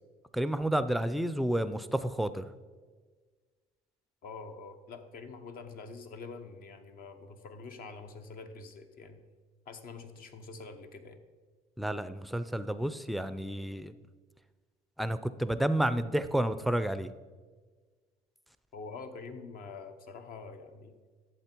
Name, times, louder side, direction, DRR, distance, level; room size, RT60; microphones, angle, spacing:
voice 1, 0.3-2.5 11.8-13.9 15.0-17.1, right 1 dB, ahead, 12 dB, 0.4 m, -30 dB
voice 2, 4.2-9.2 9.7-11.2 18.7-20.9, left 4 dB, 60° left, 7 dB, 1.1 m, -45 dB
11.5 x 7.7 x 4.5 m, 1.5 s
cardioid pair, 110°, 17 cm